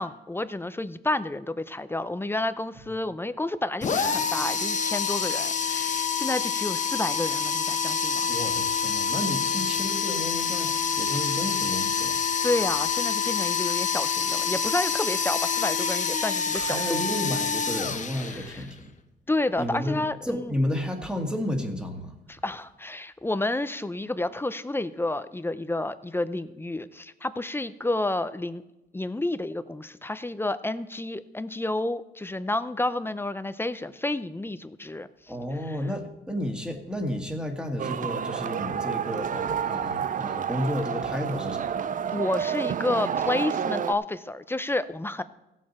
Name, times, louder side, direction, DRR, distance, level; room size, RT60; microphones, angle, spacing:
voice 1, 0.0-8.3 12.4-17.1 18.3-18.7 19.3-20.5 22.3-28.6 28.9-35.1 35.6-35.8 42.1-45.2, left 2 dB, 10° left, 13 dB, 0.6 m, -30 dB
sound 1, 3.8-18.7, left 6 dB, 40° left, 1.1 m, -27 dB
voice 2, 8.3-12.2 16.5-18.9 19.6-22.1 35.3-41.7, left 1 dB, 5° right, 3 dB, 2.0 m, -32 dB
sound 2, 37.8-43.9, right 8 dB, 40° right, 0.5 m, -29 dB
16.0 x 7.5 x 4.3 m, 0.94 s
cardioid pair, 90°, 20 cm